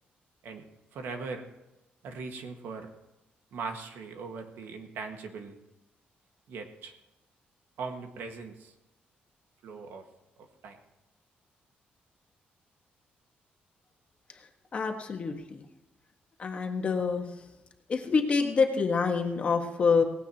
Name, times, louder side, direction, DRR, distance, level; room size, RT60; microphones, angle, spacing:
voice 1, 0.9-1.4 2.0-2.9 3.5-5.6 6.5-6.9 7.8-8.7 9.6-10.1 10.4-10.8, right 4 dB, 85° right, 4 dB, 1.8 m, -40 dB
voice 2, 14.7-15.6 16.4-17.2 17.9-20.0, left 5 dB, 40° left, 3 dB, 1.6 m, -26 dB
18.0 x 16.0 x 3.0 m, 0.99 s
cardioid pair, 140°, 3 cm